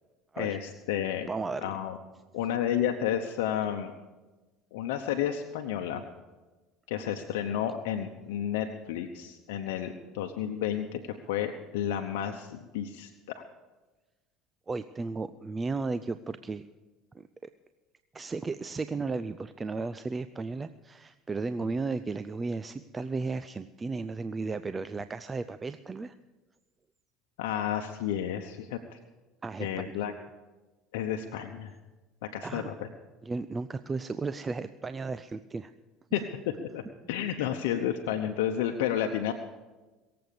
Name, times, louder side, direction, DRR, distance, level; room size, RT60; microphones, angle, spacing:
voice 1, 0.4-1.3 1.6-2.0 2.3-3.9 4.7-6.0 6.9-11.0 11.3-13.1 13.4-13.5 27.4-29.0 29.6-30.1 30.9-31.7 32.3-32.7 36.1-36.2 36.6-39.3, left 10 dB, 85° left, 4 dB, 0.9 m, -31 dB
voice 2, 1.3-1.7 14.7-16.7 17.1-17.5 18.1-26.2 29.4-29.9 32.4-32.7 33.2-35.7, right 3 dB, 20° right, 12 dB, 0.5 m, -34 dB
22.5 x 7.9 x 6.9 m, 1.2 s
supercardioid pair, 100°, 0 cm